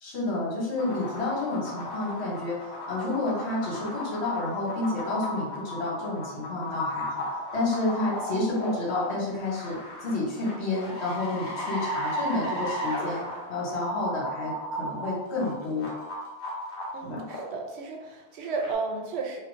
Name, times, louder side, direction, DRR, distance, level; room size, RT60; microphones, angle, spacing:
voice 1, 0.0-7.2 7.5-15.9 17.0-17.2, left 2 dB, 75° left, -4 dB, 1.2 m, -30 dB
sound 1, 0.8-17.7 18.5-18.7, equal, 45° left, 0.9 m, -35 dB
voice 2, 16.9-19.4, right 4 dB, 80° right, 1 dB, 0.9 m, -33 dB
2.8 x 2.3 x 3.6 m, 1.1 s
omnidirectional pair, 1.1 m